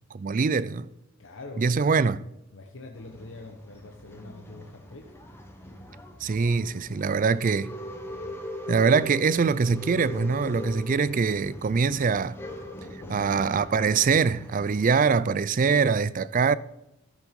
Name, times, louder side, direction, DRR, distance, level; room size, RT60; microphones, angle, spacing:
voice 1, 0.1-0.9 1.6-2.2 6.2-7.7 8.7-12.3 13.1-16.6, right 5 dB, 40° right, 0.4 m, -23 dB
voice 2, 1.2-1.8 2.5-5.1 6.8-7.7 13.0-13.4 15.5-15.8, left 2 dB, 60° left, 1.1 m, -44 dB
Male speech man speaking / Chatter / Rattle, 2.9-14.9, left 1 dB, 10° left, 1.3 m, -41 dB
13.5 x 7.5 x 5.3 m
head